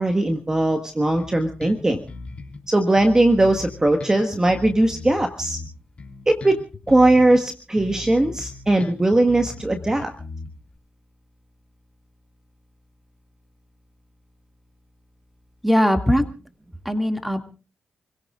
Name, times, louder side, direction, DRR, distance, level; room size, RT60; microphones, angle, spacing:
voice 1, 0.0-2.0 2.7-5.6 6.3-6.6 6.9-10.1, right 1 dB, 20° right, 5 dB, 1.6 m, -19 dB
Bass guitar, 1.2-2.6 3.0-7.4 7.8-10.8, left 3 dB, 45° left, 3.3 m, -38 dB
voice 2, 15.6-16.2 16.8-17.4, equal, 5° right, 6 dB, 2.3 m, -20 dB
29.0 x 17.0 x 2.5 m, 0.35 s
cardioid pair, 65°, 3 cm